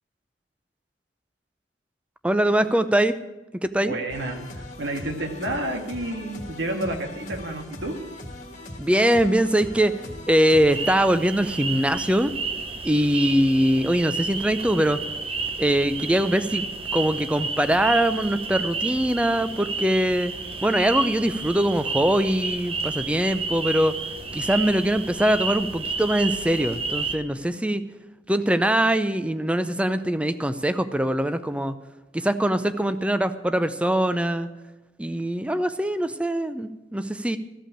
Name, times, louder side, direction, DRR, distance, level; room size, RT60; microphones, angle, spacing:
voice 1, 2.2-3.1 3.6-3.9 8.8-9.9 10.3-12.3 12.8-15.0 15.6-16.6 16.9-20.3 20.6-23.9 24.3-27.8 28.3-31.8 32.1-34.5 35.0-37.4, right 1 dB, 5° right, 11 dB, 0.5 m, -22 dB
voice 2, 3.9-8.0, right 1 dB, 80° right, 3 dB, 1.9 m, -30 dB
sound 1, 4.1-11.0, left 1 dB, 40° left, 1.8 m, -40 dB
sound 2, 10.7-27.2, right 4 dB, 30° right, 0.8 m, -31 dB
14.5 x 5.6 x 8.6 m, 1.1 s
head